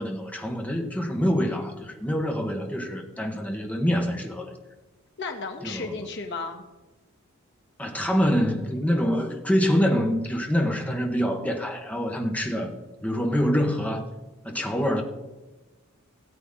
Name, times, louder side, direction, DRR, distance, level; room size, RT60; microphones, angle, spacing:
voice 1, 0.0-4.5 5.6-5.9 7.8-12.7 13.0-14.1 14.4-15.0, equal, 5° left, 2 dB, 1.5 m, -25 dB
voice 2, 5.2-6.6, left 3 dB, 55° left, 2 dB, 1.9 m, -33 dB
16.5 x 8.2 x 4.0 m, 1.1 s
head